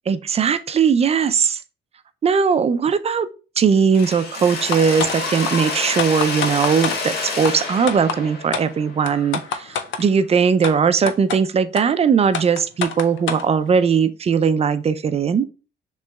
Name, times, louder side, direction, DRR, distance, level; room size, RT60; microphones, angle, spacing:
voice 1, 0.1-1.6 2.2-3.3 3.6-15.5, right 6 dB, 30° right, 0.4 m, -19 dB
Mechanisms, 3.9-9.8, left 3 dB, 55° left, 1.2 m, -29 dB
sound 1, 4.7-5.2 5.4-5.5 6.0-7.0 7.4-7.5 7.9-8.2 8.5-8.7 9.1-10.0 10.6-10.7 11.1-11.4 11.8-11.9 12.3-13.4, left 6 dB, 75° left, 0.5 m, -25 dB
6.2 x 3.0 x 2.2 m
cardioid pair, 90°, 20 cm